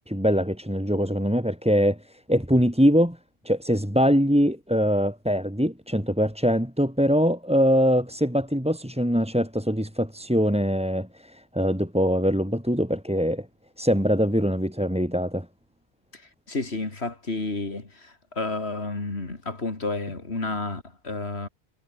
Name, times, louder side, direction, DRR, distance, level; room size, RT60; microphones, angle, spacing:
voice 1, 0.0-3.2 3.4-13.5 13.8-15.5, equal, 5° right, 4.3 m, -23 dB
voice 2, 16.1-21.5, left 3 dB, 75° left, 3.5 m, -31 dB
omnidirectional pair, 1.1 m